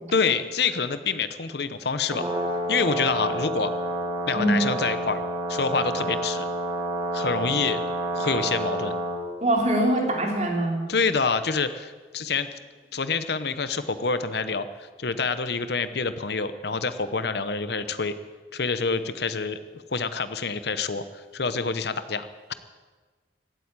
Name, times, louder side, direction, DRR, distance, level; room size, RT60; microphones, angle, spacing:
voice 1, 0.1-2.3 2.7-3.7 4.3-5.2 5.5-6.5 7.1-7.8 8.2-8.9 10.9-12.5 12.9-18.1 18.5-22.5, left 5 dB, 60° left, 12 dB, 0.8 m, -27 dB
Brass instrument, 2.0-9.2, right 1 dB, 15° right, 2.7 m, -29 dB
voice 2, 4.3-4.7 9.4-10.8, right 1 dB, 35° right, 0 dB, 3.0 m, -23 dB
16.5 x 9.2 x 8.9 m, 1.4 s
head